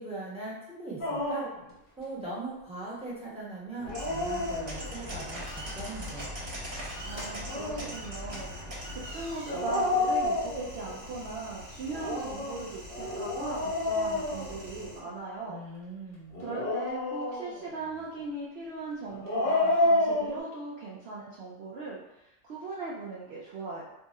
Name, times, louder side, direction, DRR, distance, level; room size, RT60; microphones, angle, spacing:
voice 1, 0.0-1.5 2.0-6.3 15.5-16.4, right 2 dB, 5° right, -8 dB, 0.9 m, -40 dB
Dog, 1.0-1.6 3.7-5.1 7.2-8.0 9.5-11.0 11.9-15.1 16.3-17.7 19.1-20.4, left 2 dB, 50° left, 0.9 m, -30 dB
sound 1, 3.9-15.0, equal, 50° right, 1.1 m, -41 dB
voice 2, 7.0-8.5 8.9-15.6 16.4-23.8, right 3 dB, 65° right, -4 dB, 0.7 m, -39 dB
2.7 x 2.3 x 4.0 m, 0.89 s
omnidirectional pair, 1.3 m